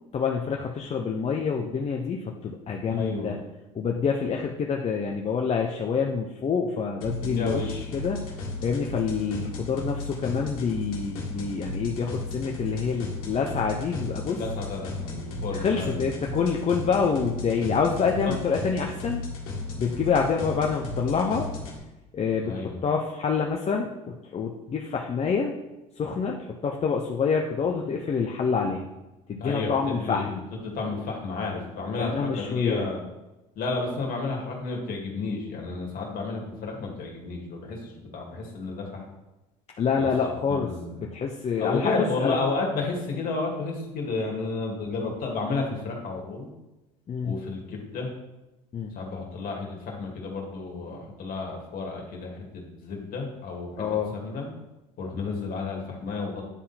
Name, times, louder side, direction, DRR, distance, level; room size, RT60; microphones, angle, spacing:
voice 1, 0.1-3.4 3.7-8.3 8.6-14.4 15.5-19.2 19.8-21.5 22.1-25.5 26.0-28.9 29.3-30.4 32.0-32.9 39.8-40.7 41.0-42.4 47.1-47.4 48.7-48.9 53.8-54.1, left 5 dB, 40° left, 1 dB, 0.8 m, -27 dB
voice 2, 2.9-3.3 7.2-7.9 14.2-16.1 18.0-18.4 22.4-22.8 29.4-33.0 33.6-39.0 40.0-41.1 41.6-46.5 47.2-48.1 48.9-53.8 54.1-54.5 55.0-56.4, left 3 dB, 55° left, 0 dB, 2.3 m, -32 dB
sound 1, 7.0-21.8, left 2 dB, 85° left, 1.7 m, -35 dB
9.9 x 3.7 x 4.2 m, 1.0 s
hypercardioid pair, 75°, 18 cm